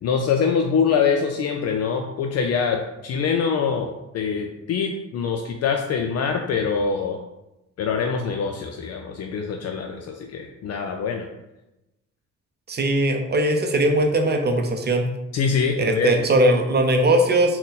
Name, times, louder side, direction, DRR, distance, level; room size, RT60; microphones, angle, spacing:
voice 1, 0.0-7.2 7.8-11.3 15.3-16.1, left 6 dB, 55° left, 3 dB, 0.4 m, -24 dB
voice 2, 12.7-15.1 15.8-17.6, right 1 dB, 35° right, 4 dB, 0.5 m, -20 dB
3.9 x 2.1 x 3.9 m, 0.96 s
cardioid pair, 90°, 30 cm